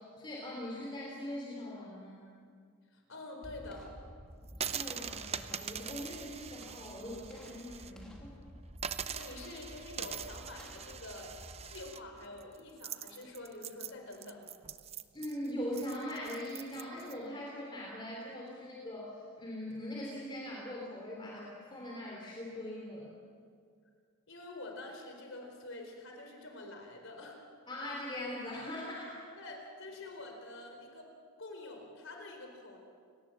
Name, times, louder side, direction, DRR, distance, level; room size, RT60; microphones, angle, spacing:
voice 1, 0.0-2.3 4.6-8.3 15.1-23.1 27.7-29.3, left 1 dB, 20° left, -3 dB, 3.4 m, -41 dB
voice 2, 2.9-3.9 9.1-11.3 11.7-14.4 24.3-27.4 29.4-31.1 31.4-32.8, left 2 dB, 60° left, 2 dB, 4.4 m, -47 dB
sound 1, 3.4-12.6, equal, 5° left, 2.7 m, -52 dB
sound 2, 4.5-7.9 8.2-8.3 8.8-17.1, right 8 dB, 30° right, 0.6 m, -43 dB
29.5 x 18.5 x 7.6 m, 2.1 s
head